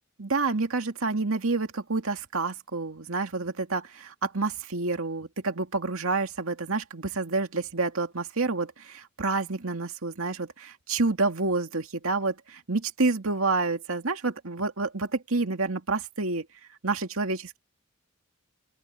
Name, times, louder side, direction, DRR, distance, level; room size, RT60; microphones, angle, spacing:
voice 1, 0.2-16.5 16.8-17.6, right 3 dB, 80° right, 2.2 m, -28 dB
open air
head